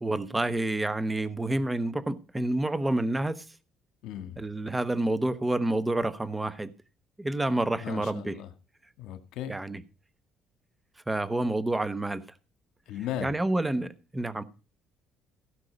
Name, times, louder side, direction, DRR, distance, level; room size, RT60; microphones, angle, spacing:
voice 1, 0.0-3.4 4.4-6.7 7.2-8.4 9.5-9.8 11.1-12.2 13.2-14.4, right 2 dB, 10° right, 1.0 m, -28 dB
voice 2, 4.0-4.4 7.8-8.5 9.0-9.6 12.9-13.4, left 10 dB, 80° left, 1.8 m, -37 dB
16.5 x 6.4 x 5.1 m
cardioid pair, 140°, 0 cm